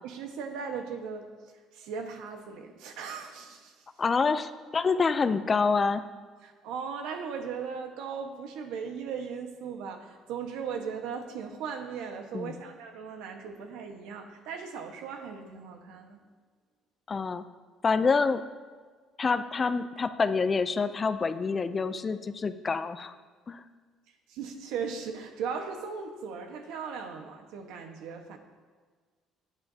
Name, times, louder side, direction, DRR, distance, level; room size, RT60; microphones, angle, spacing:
voice 1, 0.0-1.3 1.7-3.8 6.4-16.2 24.3-28.4, right 6 dB, 85° right, 4 dB, 1.3 m, -38 dB
voice 2, 4.0-6.0 12.3-12.6 17.1-17.4 17.8-18.4 19.2-23.2 23.5-23.6, left 4 dB, 25° left, 11 dB, 0.5 m, -27 dB
17.5 x 8.9 x 2.8 m, 1.5 s
cardioid pair, 130°, 0 cm